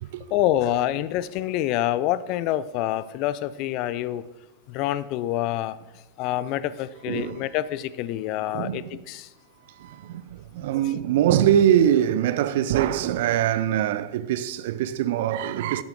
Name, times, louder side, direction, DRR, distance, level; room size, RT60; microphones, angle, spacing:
voice 1, 0.3-4.3 4.7-5.8 6.2-9.3, left 13 dB, 40° left, 0.5 m, -26 dB
voice 2, 7.1-7.4 8.4-9.0 9.8-15.8, right 10 dB, 55° right, 0.5 m, -23 dB
11.0 x 10.5 x 3.7 m
figure-of-eight pair, 90°, 0 cm